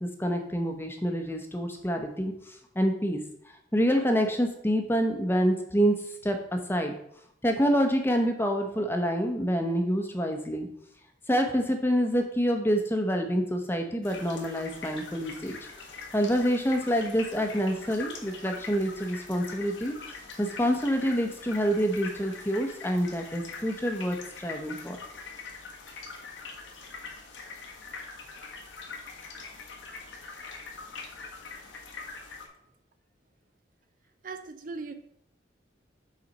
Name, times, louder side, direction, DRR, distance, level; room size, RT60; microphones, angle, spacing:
voice 1, 0.0-3.2 3.7-5.9 6.2-6.4 6.7-6.9 7.4-10.7 11.3-15.6 16.1-19.9 20.4-25.0, equal, 10° left, 4 dB, 0.8 m, -27 dB
sound 1, 14.0-32.5, left 4 dB, 90° left, 1.4 m, -43 dB
voice 2, 34.2-34.9, right 4 dB, 45° right, 8 dB, 0.5 m, -38 dB
7.0 x 4.2 x 5.2 m, 0.72 s
head